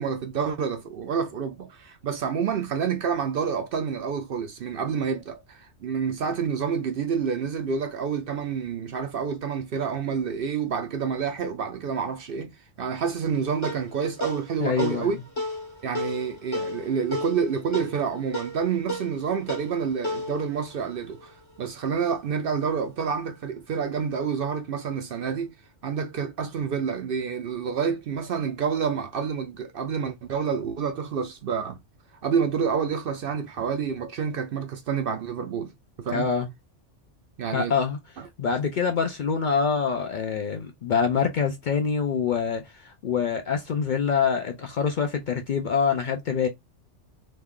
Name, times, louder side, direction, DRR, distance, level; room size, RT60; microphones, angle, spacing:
voice 1, 0.0-12.5 12.8-15.2 15.8-25.5 25.8-31.8 32.2-35.7 36.0-36.3 37.4-37.7, right 6 dB, 60° right, 0.6 m, -28 dB
sound 1, 13.2-22.0, equal, 25° left, 0.9 m, -35 dB
voice 2, 14.6-15.1 36.1-36.5 37.5-38.0 38.4-46.5, left 6 dB, 60° left, 0.5 m, -25 dB
3.1 x 2.3 x 3.5 m
omnidirectional pair, 1.2 m